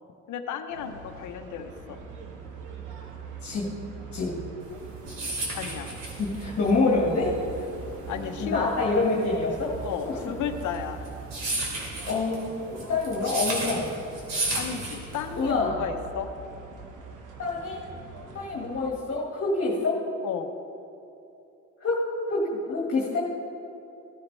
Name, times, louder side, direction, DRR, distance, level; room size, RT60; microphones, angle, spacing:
voice 1, 0.3-2.0 5.5-5.9 8.1-8.7 9.8-11.0 14.5-16.3 20.2-20.5, left 8 dB, 75° left, 7 dB, 0.9 m, -34 dB
sound 1, 0.7-18.9, right 4 dB, 80° right, 1.3 m, -42 dB
voice 2, 3.4-3.7 4.1-4.4 6.2-7.4 8.4-9.7 10.1-10.2 12.1-14.0 15.4-15.8 17.4-17.8 18.3-20.0 21.8-23.2, left 3 dB, 45° left, -4 dB, 2.0 m, -26 dB
sound 2, 4.7-15.5, right 2 dB, 60° right, 3.2 m, -33 dB
16.5 x 10.5 x 3.3 m, 2.8 s
cardioid pair, 90°, 30 cm